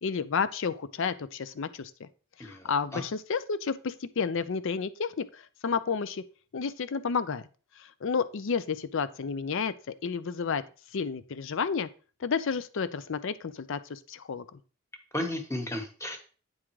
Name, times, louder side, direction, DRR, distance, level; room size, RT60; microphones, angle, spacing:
voice 1, 0.0-2.1 2.4-6.2 6.5-7.4 7.8-9.7 10.0-10.6 10.9-11.9 12.2-14.4, left 5 dB, 60° left, 14 dB, 0.5 m, -31 dB
voice 2, 2.4-3.0 15.1-16.2, left 1 dB, 15° left, 4 dB, 1.2 m, -34 dB
8.7 x 3.7 x 4.7 m, 0.38 s
head